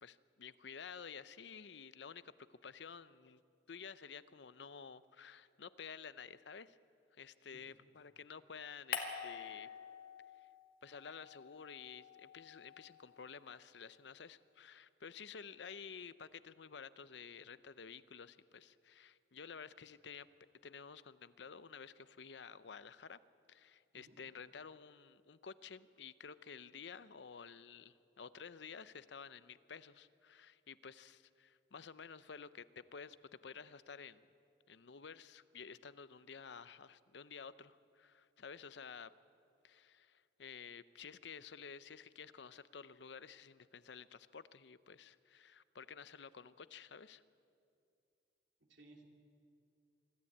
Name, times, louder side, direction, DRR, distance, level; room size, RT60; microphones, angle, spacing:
voice 1, 0.0-3.4 3.7-6.8 7.2-9.7 10.8-20.3 20.6-23.2 23.5-34.2 34.7-39.1 39.6-47.2, left 6 dB, 75° left, 15 dB, 0.6 m, -52 dB
sound 1, 8.9-10.6 10.9-13.4, left 6 dB, 50° left, 2.1 m, -47 dB
voice 2, 48.6-49.0, right 2 dB, 80° right, 2 dB, 2.9 m, -61 dB
25.0 x 13.5 x 8.6 m, 2.5 s
head